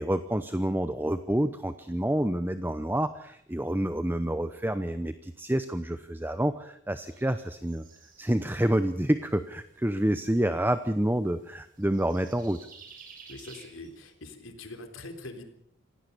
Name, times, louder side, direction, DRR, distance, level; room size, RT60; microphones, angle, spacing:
voice 1, 0.0-7.8 8.2-12.6, right 1 dB, 10° right, 11 dB, 0.8 m, -28 dB
sound 1, 7.0-14.1, right 5 dB, 45° right, 5.3 m, -55 dB
voice 2, 13.3-15.4, left 2 dB, 85° left, 6 dB, 3.7 m, -43 dB
26.0 x 17.0 x 6.9 m, 0.70 s
head